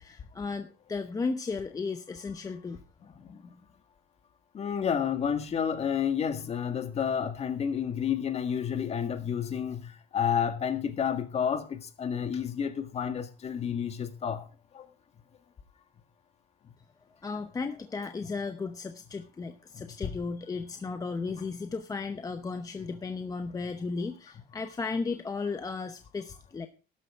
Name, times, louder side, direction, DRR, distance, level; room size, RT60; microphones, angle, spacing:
voice 1, 0.0-2.8 17.2-26.7, left 4 dB, 20° left, 0.8 m, -35 dB
voice 2, 3.2-3.5 4.5-14.4 14.7-14.9 19.7-19.8, left 8 dB, 40° left, 1.7 m, -30 dB
13.0 x 11.0 x 3.6 m
cardioid pair, 135°, 17 cm